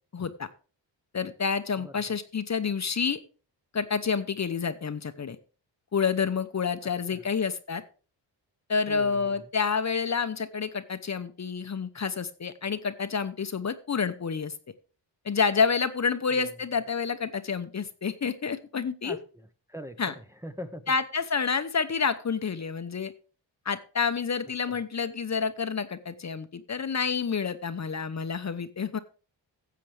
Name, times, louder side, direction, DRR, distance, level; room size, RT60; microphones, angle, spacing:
voice 1, 0.1-0.5 1.1-3.2 3.7-5.4 5.9-7.8 8.7-14.5 15.2-19.2 20.0-20.1 20.9-23.1 23.6-29.0, left 5 dB, 40° left, 10 dB, 0.9 m, -29 dB
voice 2, 1.8-2.2 7.1-7.2 8.9-9.5 16.4-16.5 19.0-19.2 19.7-20.9 24.7-24.8, equal, 5° right, 6 dB, 0.9 m, -42 dB
15.5 x 7.6 x 3.3 m, 0.37 s
wide cardioid pair, 105°, 43 cm